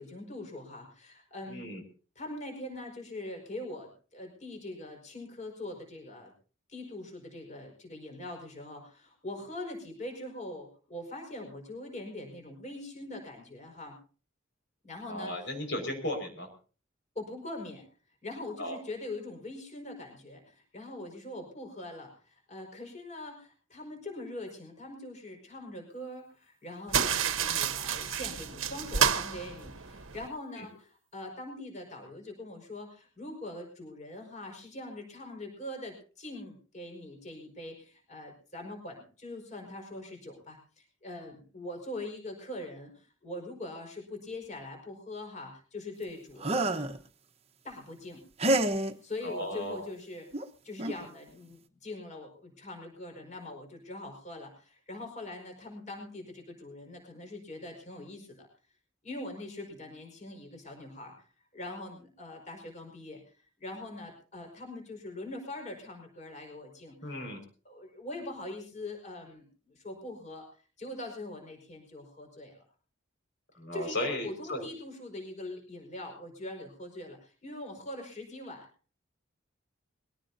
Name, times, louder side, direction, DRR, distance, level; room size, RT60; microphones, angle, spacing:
voice 1, 0.0-1.6 2.1-6.3 6.7-14.0 14.8-15.6 17.1-17.8 18.2-46.9 47.6-48.2 49.0-50.3 50.6-58.5 59.0-61.3 61.5-63.3 63.6-67.2 67.6-72.6 73.7-78.7, left 1 dB, 35° left, 3 dB, 5.2 m, -42 dB
voice 2, 1.5-1.8 15.1-16.5 18.6-18.8 30.6-30.7 49.2-49.8 67.0-67.4 73.6-74.7, left 1 dB, 60° left, 3 dB, 5.3 m, -35 dB
sound 1, 26.9-30.3, right 7 dB, 85° right, 1.2 m, -30 dB
sound 2, 46.4-47.0 48.4-48.9 50.3-50.4 50.8-51.1, right 1 dB, 30° right, 1.2 m, -27 dB
22.5 x 17.5 x 2.8 m, 0.38 s
head